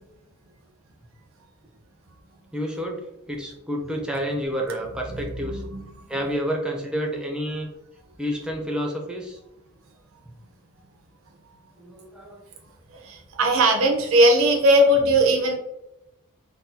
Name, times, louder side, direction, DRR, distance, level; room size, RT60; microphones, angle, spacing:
voice 1, 2.5-3.0 3.3-5.6 6.1-7.7 8.2-9.4 11.8-12.4, equal, 5° right, 0 dB, 0.5 m, -29 dB
voice 2, 5.5-5.8 12.9-15.6, right 1 dB, 65° right, 2 dB, 0.6 m, -19 dB
3.9 x 2.2 x 2.6 m, 0.91 s
head